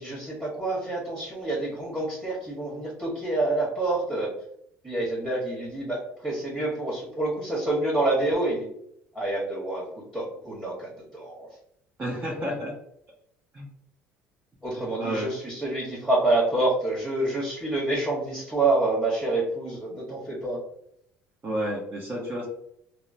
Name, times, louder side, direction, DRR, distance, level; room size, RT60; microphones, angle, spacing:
voice 1, 0.0-4.3 4.8-8.7 9.1-11.5 14.6-20.6, right 2 dB, 10° right, -5 dB, 1.3 m, -27 dB
voice 2, 12.0-12.7 13.5-13.7 14.7-15.3 21.4-22.4, equal, 30° right, -3 dB, 0.8 m, -31 dB
2.8 x 2.1 x 2.6 m, 0.72 s
supercardioid pair, 70°, 6 cm